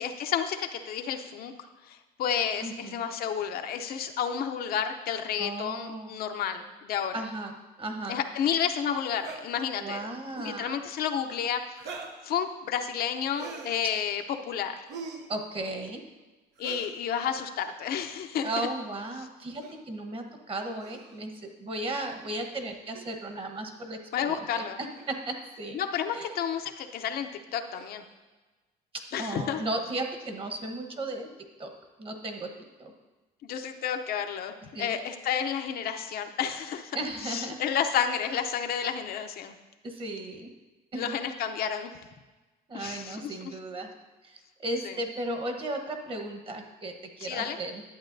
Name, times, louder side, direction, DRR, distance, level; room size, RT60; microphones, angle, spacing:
voice 1, 0.0-1.5 1.9-7.2 8.1-10.0 10.4-11.6 12.2-14.9 16.6-18.7 24.1-24.8 25.7-28.0 29.1-29.6 33.4-37.0 37.2-39.5 40.9-41.9 42.7-43.3 44.8-44.9 47.2-47.6, left 8 dB, 65° left, 6 dB, 0.6 m, -31 dB
voice 2, 2.6-3.0 5.4-6.2 7.1-8.2 9.8-10.8 15.3-16.0 18.4-25.8 26.1-26.3 29.2-31.3 31.6-31.7 32.0-32.5 32.8-32.9 34.7-35.0 36.9-37.6 39.8-40.5 40.9-41.2 42.7-43.9 44.2-47.8, right 2 dB, 30° right, 5 dB, 1.1 m, -35 dB
sound 1, 9.2-9.4 10.3-10.6 11.7-12.2 13.3-13.8 14.9-15.3 16.6-17.0 18.2-18.5 19.6-19.8 20.8-21.3 22.9-23.1 24.1-24.2 24.9-25.2 25.9-26.1 27.7-28.1, right 4 dB, 80° right, 0.9 m, -43 dB
11.0 x 8.1 x 2.6 m, 1.2 s
cardioid pair, 110°, 17 cm